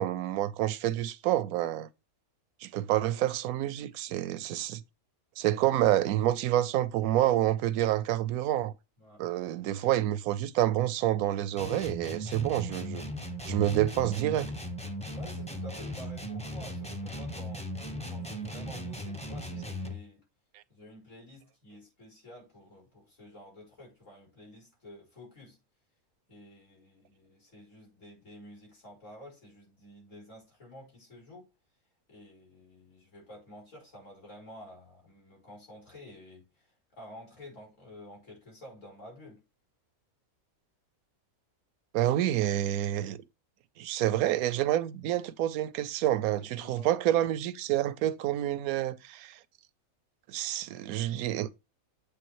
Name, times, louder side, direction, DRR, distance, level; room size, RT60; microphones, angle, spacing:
voice 1, 0.0-1.9 2.6-4.8 5.4-8.7 9.2-13.0 13.5-14.5 41.9-43.2 43.8-49.4 50.3-51.5, right 13 dB, 80° right, 1.0 m, -28 dB
sound 1, 11.6-20.0, equal, 5° left, 0.7 m, -37 dB
voice 2, 15.1-17.7 18.1-20.2 20.7-25.6 26.3-31.5 32.1-39.4 46.4-46.9, left 1 dB, 60° left, 4.5 m, -50 dB
7.7 x 3.4 x 4.6 m
omnidirectional pair, 1.5 m